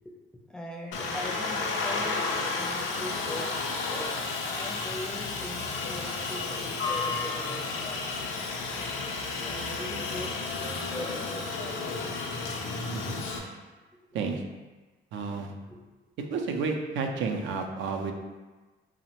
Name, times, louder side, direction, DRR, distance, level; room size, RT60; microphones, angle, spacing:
voice 1, 0.0-8.1 9.4-12.1 15.7-15.9, equal, 5° left, -1 dB, 0.4 m, -41 dB
Aircraft, 0.9-13.4, left 3 dB, 80° left, 0.4 m, -32 dB
voice 2, 15.1-15.5 16.3-18.1, right 4 dB, 75° right, 3 dB, 0.4 m, -31 dB
2.9 x 2.0 x 2.9 m, 1.2 s
cardioid pair, 90°, 20 cm